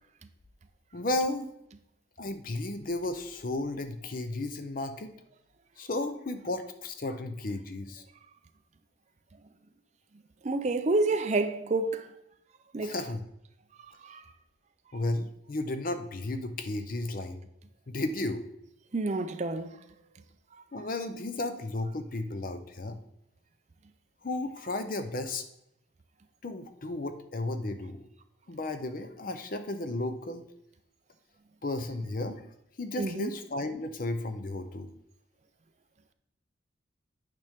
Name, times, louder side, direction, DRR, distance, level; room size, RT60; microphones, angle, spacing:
voice 1, 0.9-1.5 2.2-5.1 5.8-8.0 12.8-13.2 14.9-17.4 17.9-18.4 20.7-23.0 24.2-25.4 26.4-28.0 28.5-30.4 31.6-32.4 32.8-34.9, left 2 dB, 45° left, 0.6 m, -33 dB
voice 2, 10.4-12.1 12.7-12.9 13.8-14.2 18.9-19.8 33.0-33.3, right 2 dB, 35° right, 0.4 m, -29 dB
9.0 x 5.2 x 3.6 m
head